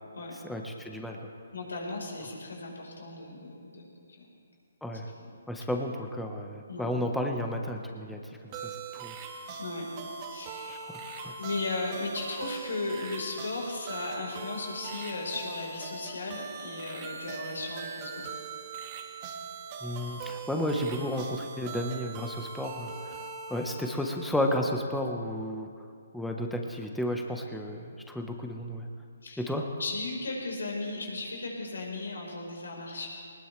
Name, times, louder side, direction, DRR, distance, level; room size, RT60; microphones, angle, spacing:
voice 1, 0.5-1.2 4.8-5.1 5.5-8.2 8.4-8.6 8.9-9.1 10.7-10.8 11.2-11.3 19.8-22.9 23.5-25.7 26.1-28.9 29.4-29.7, left 1 dB, 5° left, 2 dB, 1.2 m, -32 dB
voice 2, 1.5-3.8 4.2-4.3 5.2-5.3 6.7-6.9 9.6-9.9 10.3-10.9 11.4-18.2 29.2-29.5 29.8-33.1, left 3 dB, 75° left, -1 dB, 4.6 m, -36 dB
sound 1, 8.5-24.7, right 5 dB, 30° right, 1.8 m, -41 dB
20.0 x 19.5 x 3.4 m, 2.3 s
hypercardioid pair, 145°, 0 cm